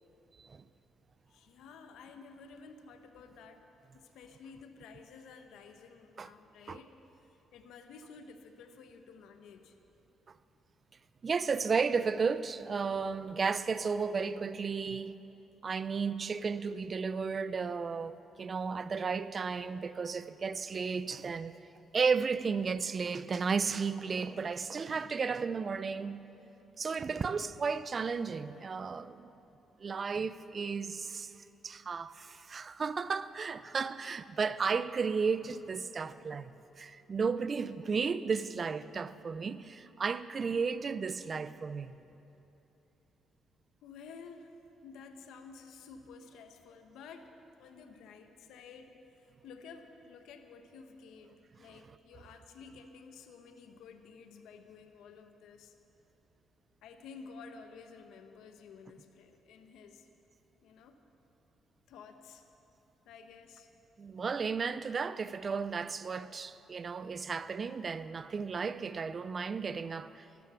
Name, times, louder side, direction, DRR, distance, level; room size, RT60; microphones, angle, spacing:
voice 1, 1.3-3.7 3.9-9.8 43.8-44.6 44.8-47.3 47.6-55.8 56.8-60.1 60.6-61.0 61.9-62.4 63.0-63.7, left 5 dB, 85° left, 1.0 m, -52 dB
voice 2, 11.2-15.2 15.6-21.5 21.9-26.2 26.8-29.3 29.8-31.3 31.6-42.0 64.0-70.2, right 5 dB, 40° right, 0.5 m, -33 dB
13.0 x 12.5 x 7.0 m
cardioid pair, 90°, 0 cm